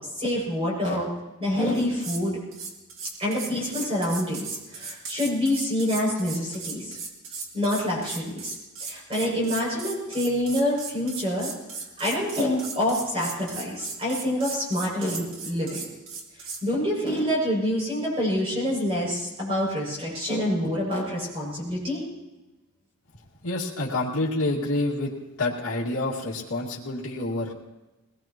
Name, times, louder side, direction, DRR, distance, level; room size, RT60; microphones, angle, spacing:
voice 1, 0.2-1.1 1.4-2.4 3.2-4.4 4.7-7.0 7.5-8.5 8.8-11.5 12.0-15.8 16.6-22.0, left 1 dB, 25° right, -5 dB, 6.8 m, -26 dB
sound 1, 1.7-2.2 2.5-16.6, right 4 dB, 60° right, 2.2 m, -37 dB
voice 2, 23.4-25.1 25.4-27.5, left 2 dB, 75° left, -7 dB, 2.3 m, -28 dB
21.5 x 20.0 x 3.0 m, 1.1 s
head